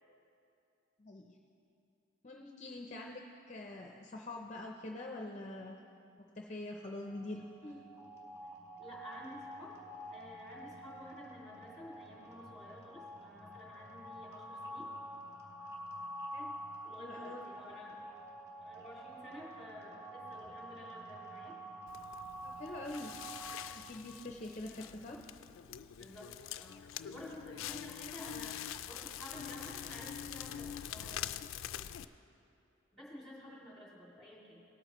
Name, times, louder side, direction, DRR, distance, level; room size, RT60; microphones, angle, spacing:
voice 1, 1.0-1.4 2.2-5.8 6.2-7.8 16.3-16.5 17.0-17.4 22.4-23.1 23.7-25.2 33.4-33.6, left 2 dB, 35° left, 1 dB, 0.5 m, -45 dB
sound 1, 7.0-23.7, right 1 dB, 15° right, 1.2 m, -48 dB
voice 2, 8.8-14.9 16.8-18.1 18.6-21.6 24.8-24.9 26.0-31.8 32.9-34.6, equal, ahead, -6 dB, 2.5 m, -51 dB
Crackle, 21.9-32.0, left 10 dB, 90° left, 0.3 m, -45 dB
18.0 x 8.6 x 3.0 m, 2.7 s
head